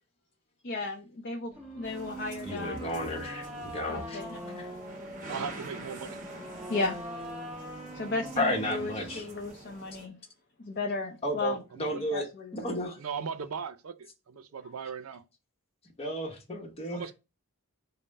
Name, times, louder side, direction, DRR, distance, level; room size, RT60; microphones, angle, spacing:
voice 1, 0.6-2.8 3.9-4.7 5.2-5.6 6.7-7.0 7.9-10.2 10.6-11.6 12.1-12.8, left 3 dB, 50° left, 0.5 m, -35 dB
sound 1, 1.5-9.5, right 1 dB, 10° right, 1.1 m, -42 dB
sound 2, 1.8-10.1, right 2 dB, 35° right, 1.2 m, -47 dB
voice 2, 2.4-4.2 4.6-4.7 8.4-9.3 11.2-12.3 12.5-13.0 16.0-17.1, left 1 dB, 25° left, 0.9 m, -33 dB
voice 3, 5.3-6.2 13.0-13.9 14.3-15.2 16.9-17.1, right 6 dB, 85° right, 0.5 m, -37 dB
5.4 x 2.0 x 4.0 m
head